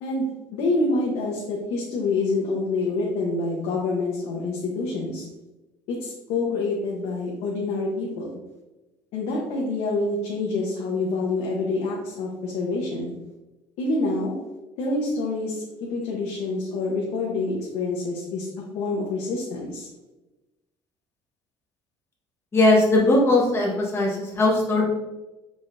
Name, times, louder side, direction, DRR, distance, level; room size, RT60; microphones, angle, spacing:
voice 1, 0.0-5.3 5.9-8.3 9.1-13.1 13.8-14.4 14.8-15.6 15.9-19.9, left 3 dB, 80° left, -3 dB, 0.9 m, -27 dB
voice 2, 22.5-24.8, left 2 dB, 25° left, -3 dB, 1.2 m, -19 dB
5.0 x 3.8 x 2.5 m, 1.1 s
cardioid pair, 150°, 11 cm